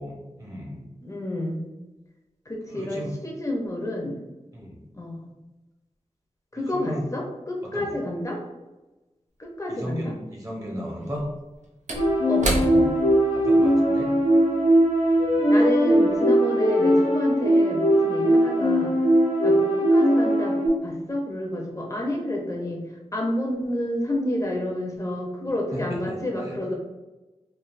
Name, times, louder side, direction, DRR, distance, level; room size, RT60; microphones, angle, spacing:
voice 1, 0.0-0.8 2.7-3.2 4.5-4.8 6.7-7.0 7.6-7.9 9.7-11.3 13.3-14.1 15.2-15.3 25.7-26.2 26.4-26.7, equal, 30° right, -2 dB, 0.8 m, -35 dB
voice 2, 1.0-1.6 2.5-4.2 5.0-5.3 6.5-8.4 9.6-10.1 12.3-12.9 15.5-18.9 19.4-22.8 23.1-26.7, left 1 dB, 25° left, -1 dB, 0.6 m, -29 dB
Slam / Wood, 9.4-9.5 11.0-15.7 16.0-16.2, right 1 dB, 85° right, 0.5 m, -33 dB
sound 1, 11.9-20.7, equal, 80° left, 1.0 m, -20 dB
3.2 x 2.4 x 2.4 m, 1.1 s
wide cardioid pair, 95°, 12 cm